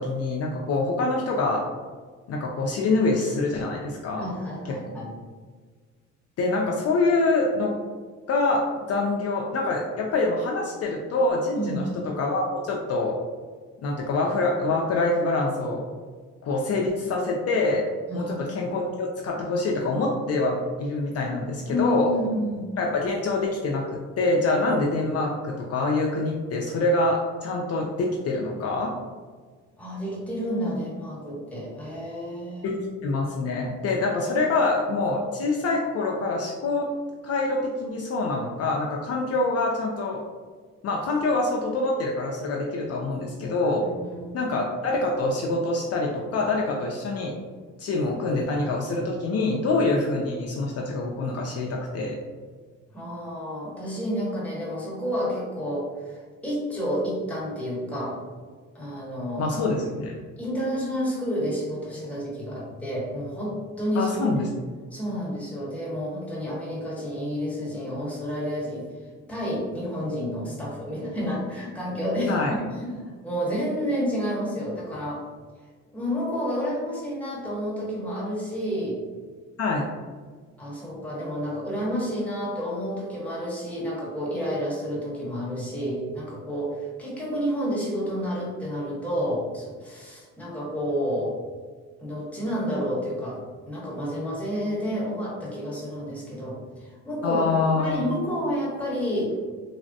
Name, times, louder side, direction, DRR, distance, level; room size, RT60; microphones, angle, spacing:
voice 1, 0.0-1.6 2.3-4.3 4.6-4.8 6.4-7.7 8.3-13.1 13.8-15.8 16.4-17.8 18.1-22.1 22.8-28.9 32.6-32.8 33.0-36.9 37.2-40.2 40.8-43.8 44.3-47.3 47.8-52.2 59.4-60.2 64.0-64.5 72.3-72.5 79.6-79.9 97.2-98.0, left 2 dB, 55° left, -1 dB, 0.4 m, -25 dB
voice 2, 4.2-5.1 11.5-11.9 18.1-18.3 21.7-22.7 29.8-32.8 43.8-44.4 52.9-58.2 58.7-59.5 60.4-64.2 64.9-68.8 69.3-72.4 72.7-75.2 75.9-79.0 80.6-91.4 92.0-93.4 93.7-97.4 97.8-99.3, equal, 5° left, -6 dB, 1.1 m, -30 dB
3.3 x 2.0 x 2.6 m, 1.5 s
cardioid pair, 90°, 30 cm